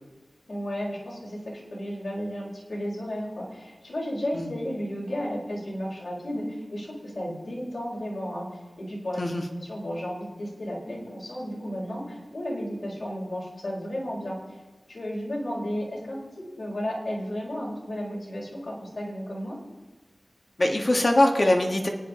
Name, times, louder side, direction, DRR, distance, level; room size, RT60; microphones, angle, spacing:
voice 1, 0.5-8.5 8.8-14.6 14.9-19.6, equal, 65° left, -4 dB, 4.5 m, -33 dB
voice 2, 20.6-21.9, left 1 dB, 45° left, 3 dB, 1.6 m, -22 dB
25.0 x 9.5 x 3.7 m, 1.2 s
wide cardioid pair, 65°, 0 cm